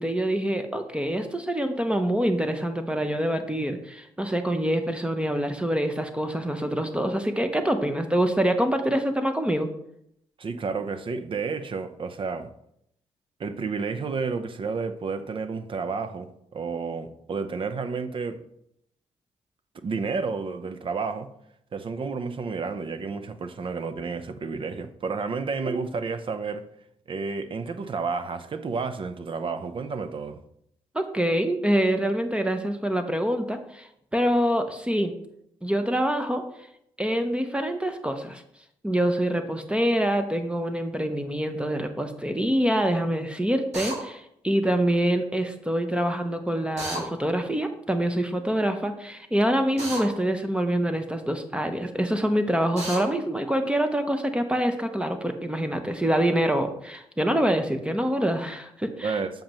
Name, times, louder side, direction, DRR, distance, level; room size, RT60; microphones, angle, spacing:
voice 1, 0.0-9.7 30.9-35.1 35.6-36.4 37.0-38.4 38.8-59.2, right 1 dB, 10° right, 0.7 m, -25 dB
voice 2, 10.4-12.5 13.4-18.4 19.7-21.3 21.7-26.6 27.1-30.4 59.0-59.4, right 4 dB, 45° right, 0.6 m, -31 dB
Drill, 43.7-44.0 46.8-47.0 49.8-50.1 52.8-53.0, right 1 dB, 65° right, 2.4 m, -32 dB
7.3 x 5.2 x 3.0 m
cardioid pair, 70°, 12 cm